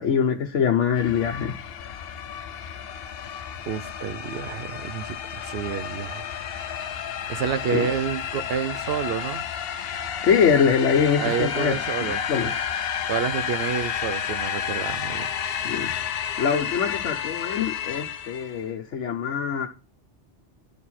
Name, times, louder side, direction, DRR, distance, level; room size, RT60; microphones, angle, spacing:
voice 1, 0.0-1.6 7.7-7.9 10.2-11.8 12.3-12.5 15.6-15.9 16.4-19.7, left 7 dB, 85° left, 1.2 m, -23 dB
sound 1, 1.0-18.6, left 8 dB, 60° left, 0.8 m, -31 dB
voice 2, 3.7-6.3 7.3-9.4 11.2-12.5 13.1-15.3, right 8 dB, 65° right, 0.8 m, -29 dB
11.0 x 4.6 x 4.2 m
omnidirectional pair, 1.2 m